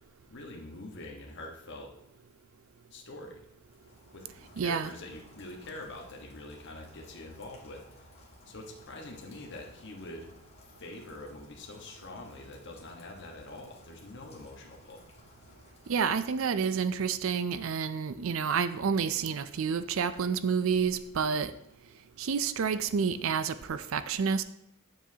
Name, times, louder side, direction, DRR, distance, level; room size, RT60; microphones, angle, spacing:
voice 1, 0.3-1.9 2.9-3.4 4.1-8.1 8.4-10.3 10.6-15.0, left 2 dB, 55° left, 0 dB, 1.3 m, -45 dB
Rain, 3.5-17.3, left 1 dB, 30° left, 1.5 m, -57 dB
voice 2, 4.6-4.9 15.9-21.5 22.2-24.4, right 6 dB, 65° right, 13 dB, 0.4 m, -29 dB
9.3 x 7.2 x 2.8 m, 0.81 s
head